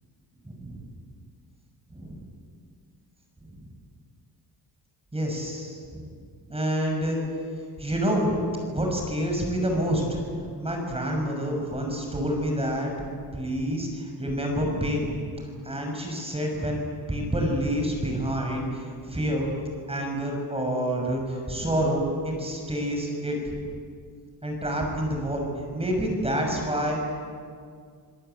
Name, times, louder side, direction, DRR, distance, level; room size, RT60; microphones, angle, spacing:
voice 1, 0.4-0.8 1.9-2.2 3.5-3.7 5.1-6.0 6.5-7.2 7.8-8.4 8.7-10.2 10.6-12.9 13.3-15.2 15.6-16.8 17.1-19.5 19.9-23.6 24.4-27.0, equal, 15° right, 1 dB, 6.2 m, -28 dB
27.0 x 18.0 x 9.1 m, 2.1 s
cardioid pair, 120°, 40 cm